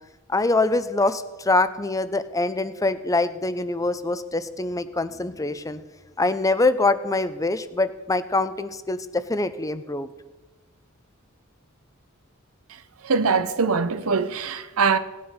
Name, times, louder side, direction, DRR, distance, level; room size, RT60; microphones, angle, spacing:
voice 1, 0.3-5.8 6.2-10.1, left 2 dB, 15° left, 0.6 m, -24 dB
voice 2, 13.0-15.0, right 5 dB, 80° right, 0.8 m, -22 dB
17.5 x 9.5 x 5.6 m
head